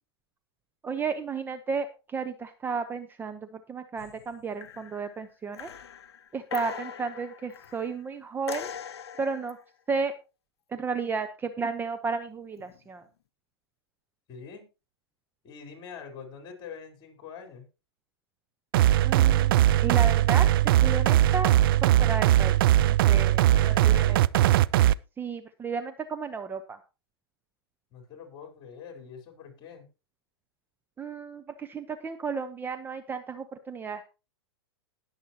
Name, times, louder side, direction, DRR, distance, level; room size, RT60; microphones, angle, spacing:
voice 1, 0.8-5.7 6.3-8.7 9.2-9.6 9.9-10.1 10.7-13.0 19.0-20.5 20.8-21.5 21.8-23.5 23.8-24.2 25.2-26.8 31.0-34.1, right 5 dB, 15° right, 9 dB, 0.8 m, -33 dB
sound 1, 4.0-4.3 4.6-5.1 5.5-8.0 8.5-9.6 12.6-12.8, left 8 dB, 75° left, 0.9 m, -41 dB
voice 2, 14.3-14.6 15.4-17.6 23.5-24.3 27.9-29.9, left 6 dB, 30° left, 4 dB, 4.2 m, -44 dB
sound 2, 18.7-24.9, right 13 dB, 55° right, 0.5 m, -20 dB
19.5 x 7.3 x 2.9 m, 0.30 s
hypercardioid pair, 115°, 14 cm